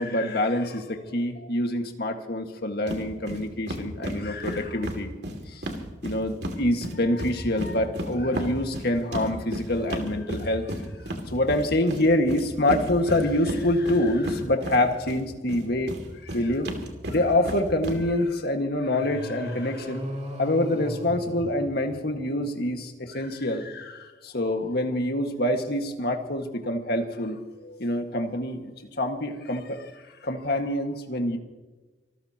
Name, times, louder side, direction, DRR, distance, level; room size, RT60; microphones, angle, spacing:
voice 1, 0.0-5.1 5.5-5.6 6.0-10.7 11.3-15.9 16.2-16.7 17.1-20.1 20.4-29.9 30.2-31.4, left 1 dB, 60° left, 4 dB, 1.8 m, -26 dB
sound 1, 2.9-3.0 3.3-3.4 3.7-6.6 6.8-15.2 15.5-18.0, right 1 dB, 65° right, 2.5 m, -33 dB
sound 2, 19.0-22.3, equal, 40° right, 2.8 m, -37 dB
26.0 x 14.5 x 2.9 m, 1.2 s
head